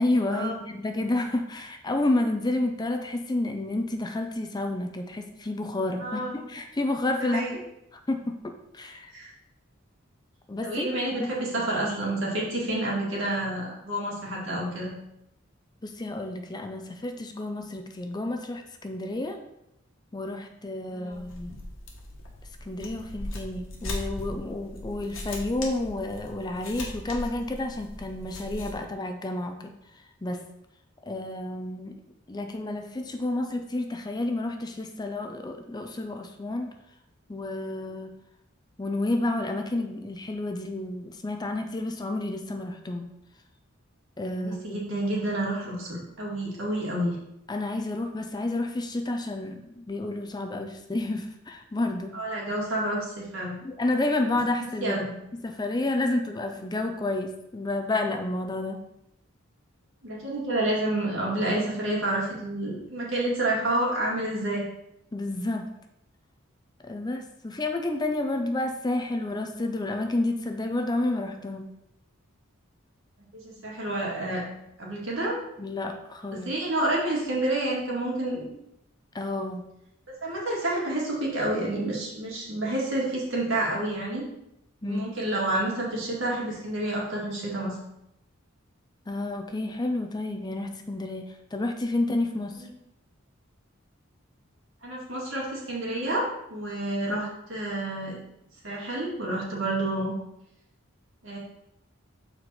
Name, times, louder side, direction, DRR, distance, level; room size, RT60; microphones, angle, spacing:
voice 1, 0.0-7.4 8.1-9.1 10.5-11.3 11.6-11.7 15.8-19.4 20.1-21.5 22.6-29.7 30.2-30.4 31.1-32.0 32.3-36.7 37.3-38.1 38.8-43.1 44.2-44.8 47.5-52.2 53.6-55.0 55.4-58.8 65.1-65.7 66.8-71.7 75.6-76.5 79.1-79.7 84.8-85.0 89.1-92.7, left 2 dB, 20° left, 5 dB, 0.5 m, -30 dB
voice 2, 6.0-6.4 7.2-7.6 9.1-9.3 10.6-14.9 20.9-21.2 44.3-47.2 52.1-53.6 54.8-55.1 60.0-64.6 73.3-74.4 74.8-75.4 76.4-78.5 80.2-84.2 84.8-87.7 92.6-92.7 94.8-98.2 98.6-100.1 101.2-101.4, right 1 dB, 70° right, -4 dB, 2.2 m, -29 dB
sound 1, 21.1-28.7, left 1 dB, 70° left, 1.4 m, -38 dB
6.8 x 4.4 x 4.1 m, 0.83 s
head